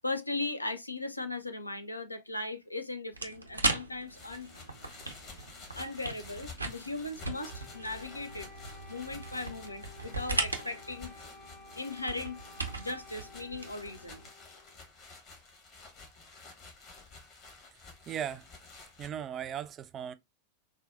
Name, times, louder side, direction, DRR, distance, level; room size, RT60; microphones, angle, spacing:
voice 1, 0.0-4.5 5.7-8.5 8.9-11.2 11.8-12.4 12.8-14.2, left 2 dB, 85° left, 0.4 m, -38 dB
sound 1, 3.1-14.3, right 2 dB, 80° right, 0.5 m, -38 dB
sound 2, 4.1-19.1, left 3 dB, 40° left, 1.2 m, -51 dB
Wind instrument woodwind instrument, 7.2-14.9, left 4 dB, 15° left, 0.6 m, -54 dB
voice 2, 18.1-18.5 19.0-20.1, right 9 dB, 30° right, 0.3 m, -37 dB
4.0 x 2.2 x 2.4 m
figure-of-eight pair, 90°, 0 cm